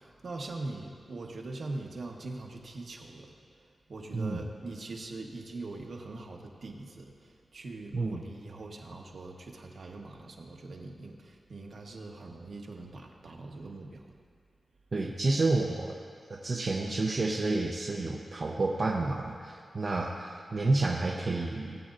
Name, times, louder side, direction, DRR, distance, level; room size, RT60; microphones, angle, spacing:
voice 1, 0.0-14.1, right 2 dB, 60° right, 1 dB, 1.1 m, -42 dB
voice 2, 14.9-16.0 16.3-21.9, right 2 dB, 45° right, -2 dB, 0.6 m, -30 dB
19.0 x 8.5 x 2.5 m, 2.1 s
wide cardioid pair, 160°, 0 cm